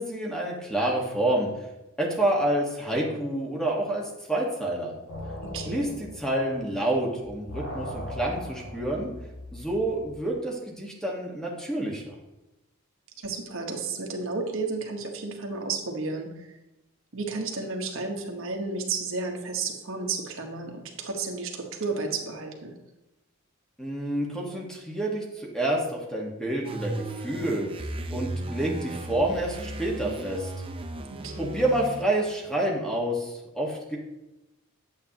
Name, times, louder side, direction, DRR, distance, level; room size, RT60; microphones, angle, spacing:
voice 1, 0.0-1.5 2.0-4.9 5.7-9.1 9.5-12.1 23.8-30.5 31.4-34.0, right 1 dB, 5° left, -1 dB, 1.5 m, -28 dB
sound 1, 5.1-7.0 7.2-10.2, left 1 dB, 65° left, 1.7 m, -39 dB
voice 2, 5.4-5.9 13.2-16.5 17.1-22.7 31.1-31.5, right 4 dB, 65° right, 2 dB, 1.3 m, -32 dB
sound 2, 26.6-32.0, right 2 dB, 25° right, 0.6 m, -35 dB
9.0 x 7.8 x 2.9 m, 0.96 s
head